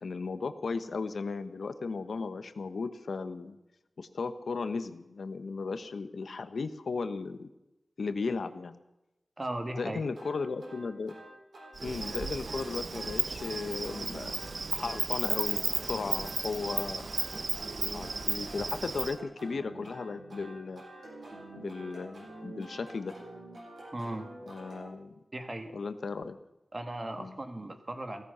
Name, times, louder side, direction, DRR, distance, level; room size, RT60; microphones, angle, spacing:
voice 1, 0.0-3.6 4.0-7.5 8.0-8.8 9.8-11.2 11.8-14.4 14.7-17.1 17.9-20.8 21.5-23.2 24.5-25.2 25.7-26.4 27.2-27.4, left 4 dB, 85° left, 10 dB, 1.0 m, -36 dB
voice 2, 9.4-10.0 23.9-24.3 25.3-25.7 26.7-28.2, right 1 dB, 35° right, 6 dB, 1.9 m, -37 dB
sound 1, 10.1-24.9, right 2 dB, 85° right, 6.7 m, -48 dB
Insect, 11.8-19.2, right 4 dB, 60° right, 0.7 m, -34 dB
16.5 x 14.5 x 5.7 m, 0.95 s
wide cardioid pair, 85°, 0 cm